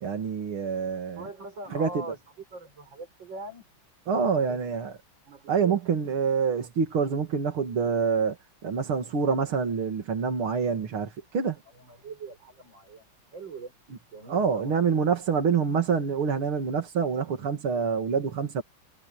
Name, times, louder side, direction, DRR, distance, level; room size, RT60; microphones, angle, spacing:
voice 1, 0.0-1.3 1.7-2.0 4.1-4.9 5.5-8.4 8.6-11.6 14.3-18.6, right 6 dB, 85° right, 3.3 m, -26 dB
voice 2, 1.2-2.2 2.5-3.6 4.1-4.7 5.3-5.8 11.8-13.7 14.1-14.8, right 3 dB, 60° right, 6.3 m, -41 dB
omnidirectional pair, 2.3 m